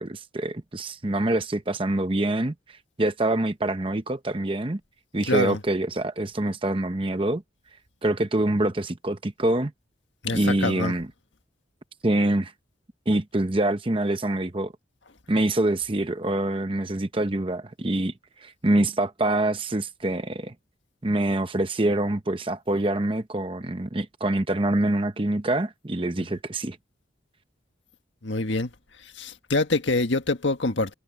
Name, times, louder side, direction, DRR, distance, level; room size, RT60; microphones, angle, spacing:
voice 1, 0.0-2.5 3.0-4.8 5.1-7.4 8.0-9.7 10.3-11.1 12.0-12.5 13.1-14.7 15.3-18.1 18.4-20.5 21.0-26.8, right 1 dB, 25° right, 0.8 m, -25 dB
voice 2, 5.3-5.6 10.2-10.9 28.2-28.7 29.1-30.9, left 2 dB, 70° left, 1.7 m, -25 dB
head